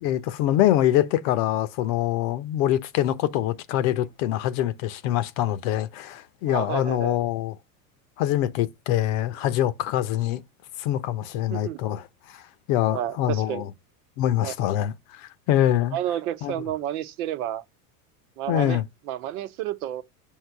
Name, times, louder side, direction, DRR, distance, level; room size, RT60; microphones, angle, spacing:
voice 1, 0.0-7.5 8.2-10.4 10.8-12.0 12.3-12.4 12.7-13.7 14.2-16.0 16.4-16.5 18.5-18.8, left 12 dB, 65° left, 0.9 m, -24 dB
voice 2, 6.5-7.2 11.5-11.8 12.9-13.6 14.4-14.5 15.9-17.6 18.4-18.8 19.1-20.0, right 12 dB, 80° right, 1.0 m, -30 dB
6.6 x 3.0 x 5.8 m
supercardioid pair, 105°, 43 cm